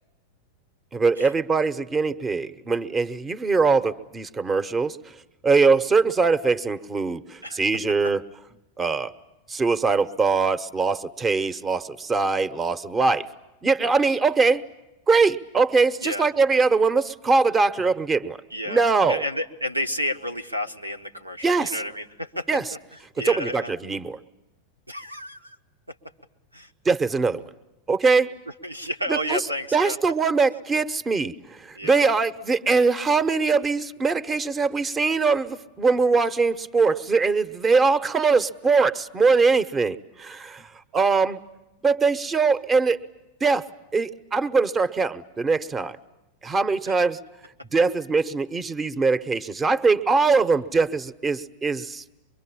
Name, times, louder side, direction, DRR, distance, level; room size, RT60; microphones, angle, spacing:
voice 1, 0.9-5.0 5.4-8.2 8.8-9.1 9.5-13.3 13.6-14.6 15.1-18.4 18.7-19.2 21.4-21.8 22.5-22.6 23.3-24.2 26.8-27.5 27.9-28.3 29.1-29.4 29.7-41.4 41.8-43.0 43.4-43.6 43.9-46.0 46.4-47.2 47.7-52.0, right 4 dB, 20° right, 13 dB, 1.1 m, -22 dB
voice 2, 18.5-18.8 19.1-23.7 24.9-25.6 25.9-26.0 26.5-26.7 28.5-30.0 31.7-32.1 46.8-47.0, equal, 85° right, 6 dB, 1.4 m, -31 dB
24.5 x 23.5 x 8.7 m, 1.0 s
figure-of-eight pair, 90°, 0 cm